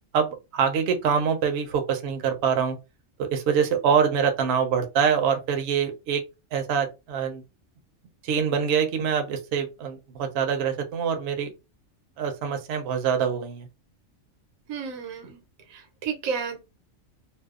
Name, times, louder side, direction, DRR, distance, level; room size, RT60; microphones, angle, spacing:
voice 1, 0.1-2.8 3.2-6.2 6.5-7.4 8.2-11.5 12.2-13.7, right 7 dB, 65° right, 0.7 m, -25 dB
voice 2, 14.7-15.4 15.7-16.6, right 6 dB, 85° right, 1.1 m, -32 dB
2.6 x 2.0 x 2.3 m
omnidirectional pair, 1.4 m